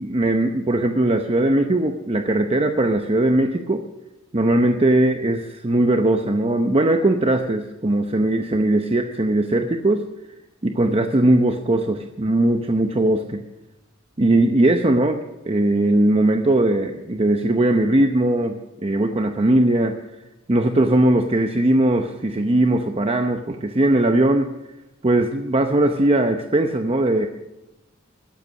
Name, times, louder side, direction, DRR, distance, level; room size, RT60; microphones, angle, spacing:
voice 1, 0.0-3.8 4.3-10.0 10.6-13.4 14.2-18.5 18.8-19.9 20.5-24.5 25.0-27.3, right 1 dB, 30° right, 5 dB, 0.8 m, -19 dB
21.5 x 8.3 x 6.4 m, 0.97 s
head